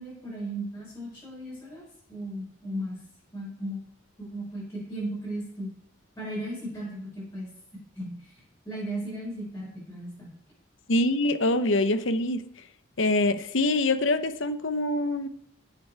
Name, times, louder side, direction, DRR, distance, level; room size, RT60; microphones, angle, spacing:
voice 1, 0.0-1.8 2.1-3.0 3.3-3.8 4.2-5.7 6.2-7.5 7.9-10.3, right 1 dB, 15° left, -8 dB, 5.1 m, -36 dB
voice 2, 10.9-12.7 13.0-15.3, left 2 dB, 70° left, 11 dB, 0.9 m, -25 dB
16.5 x 7.9 x 4.7 m, 0.70 s
head